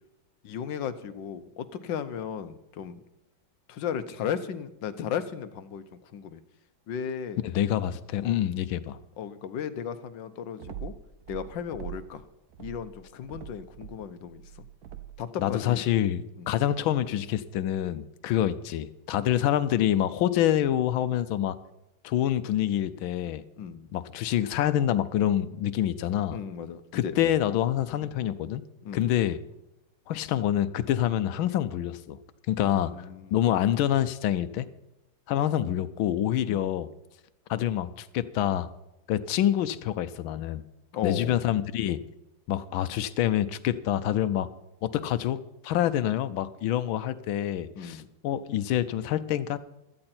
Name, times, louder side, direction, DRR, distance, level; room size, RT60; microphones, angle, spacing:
voice 1, 0.4-3.0 3.7-6.4 6.9-7.4 8.2-8.4 9.2-10.9 11.3-12.2 12.6-14.4 15.2-15.8 16.4-16.5 23.6-23.9 26.3-27.1 27.5-27.6 28.8-29.1 32.5-33.4 36.5-36.6 40.9-41.4 47.8-48.1, left 8 dB, 70° left, 12 dB, 1.5 m, -35 dB
voice 2, 7.4-9.0 15.4-21.6 22.0-23.4 23.9-26.4 26.9-28.6 28.9-29.4 30.1-32.2 32.5-34.7 35.3-36.9 37.5-38.7 39.1-40.6 41.0-42.0 42.5-44.5 44.8-49.6, left 11 dB, 85° left, 13 dB, 1.5 m, -26 dB
sound 1, 10.6-12.2 12.5-15.3, right 10 dB, 60° right, 1.2 m, -43 dB
16.5 x 13.0 x 4.4 m, 0.91 s
omnidirectional pair, 2.1 m